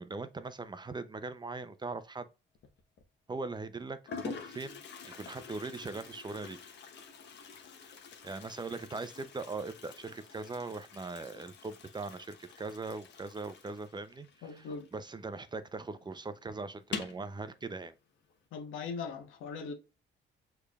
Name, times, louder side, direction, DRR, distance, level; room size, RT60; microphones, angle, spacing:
voice 1, 0.0-2.3 3.3-6.6 8.2-17.9, right 3 dB, 20° right, 0.5 m, -40 dB
Toilet flush, 2.5-3.0 3.7-15.4 15.6-15.7 16.0-16.1 16.8-17.3, left 5 dB, 60° left, 1.0 m, -46 dB
voice 2, 14.4-14.9 18.5-19.7, left 5 dB, 85° left, 1.1 m, -40 dB
6.5 x 3.4 x 2.4 m
cardioid pair, 90°, 20 cm